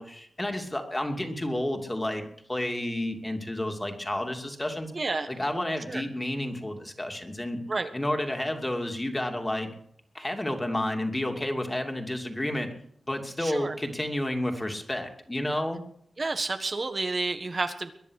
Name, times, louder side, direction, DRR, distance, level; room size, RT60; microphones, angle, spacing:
voice 1, 0.0-2.2 2.5-4.9 5.3-7.6 7.9-9.7 10.1-12.7 13.1-15.8, left 1 dB, 20° left, 4 dB, 2.7 m, -30 dB
voice 2, 4.9-5.3 5.9-6.0 7.7-7.9 13.4-13.8 16.2-17.9, right 3 dB, 45° right, 7 dB, 1.5 m, -30 dB
22.0 x 10.0 x 6.5 m, 0.68 s
wide cardioid pair, 75°, 0 cm